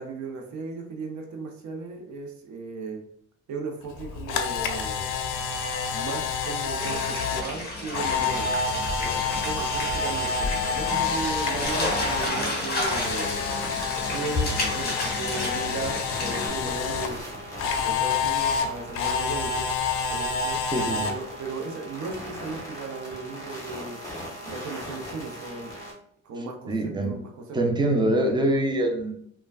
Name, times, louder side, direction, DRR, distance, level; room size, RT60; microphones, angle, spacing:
voice 1, 0.0-3.0 3.5-5.1 5.9-8.6 9.0-10.3 10.7-13.5 14.1-17.2 17.6-19.7 20.1-20.6 21.1-24.0 24.4-25.7 26.2-27.6, right 4 dB, 70° right, 3 dB, 0.6 m, -36 dB
Camera, 3.9-12.3 12.6-17.1 17.6-21.1, left 5 dB, 80° left, 0.5 m, -28 dB
sound 1, 6.8-16.5, left 2 dB, 30° left, 0.9 m, -31 dB
sound 2, 11.6-25.9, equal, 10° left, 1.1 m, -40 dB
voice 2, 20.7-21.1 26.7-27.2 27.5-29.1, right 1 dB, 15° right, 3 dB, 0.5 m, -24 dB
3.1 x 2.2 x 2.3 m, 0.66 s
cardioid pair, 90°, 30 cm